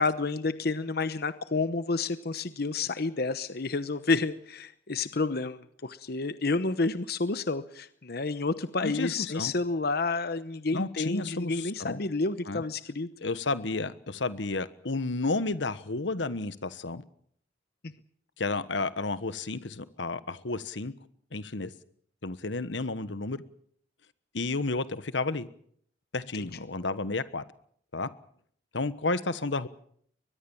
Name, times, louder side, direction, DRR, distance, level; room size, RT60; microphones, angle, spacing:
voice 1, 0.0-13.1 26.3-26.4, left 3 dB, 60° left, 13 dB, 1.0 m, -30 dB
voice 2, 8.8-9.5 10.7-12.0 12.5-12.6 13.2-17.0 18.4-20.9 21.3-21.7 22.2-23.4 24.3-25.5 26.1-27.4 27.9-28.1 28.7-29.7, left 3 dB, 85° left, 14 dB, 1.3 m, -31 dB
23.0 x 20.0 x 7.2 m, 0.64 s
head